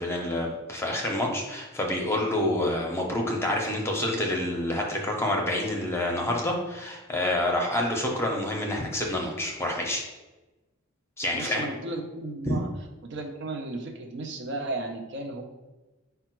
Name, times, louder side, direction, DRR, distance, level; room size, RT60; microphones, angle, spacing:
voice 1, 0.0-10.0 11.2-11.7 12.5-12.6, left 1 dB, 10° left, 0 dB, 0.7 m, -28 dB
voice 2, 11.3-12.7 13.0-15.4, right 2 dB, 60° right, 3 dB, 0.6 m, -34 dB
4.9 x 2.2 x 4.4 m, 1.1 s
head